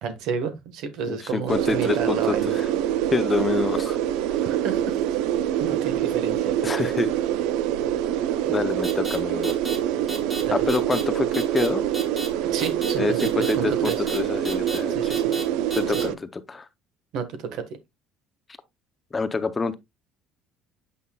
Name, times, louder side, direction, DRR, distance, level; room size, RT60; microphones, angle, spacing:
voice 1, 0.0-2.5 4.4-5.0 5.6-6.9 10.4-10.7 12.5-14.0 14.9-15.3 15.9-16.2 17.1-17.6, right 6 dB, 60° right, 1.3 m, -31 dB
voice 2, 1.1-2.7 3.1-4.0 6.6-7.2 8.5-9.5 10.5-11.8 13.0-15.1 15.7-16.7 19.1-19.7, left 4 dB, 15° left, 0.5 m, -27 dB
sound 1, 1.5-16.1, right 11 dB, 75° right, 0.4 m, -25 dB
sound 2, 8.8-9.2 9.4-9.8 10.1-10.4 10.7-11.0 11.3-11.7 11.9-12.3 12.6-12.9 13.2-13.5 13.8-14.2 14.5-14.8 15.1-15.4 15.7-16.0, equal, 5° right, 1.7 m, -33 dB
8.4 x 5.4 x 2.2 m
cardioid pair, 175°, 0 cm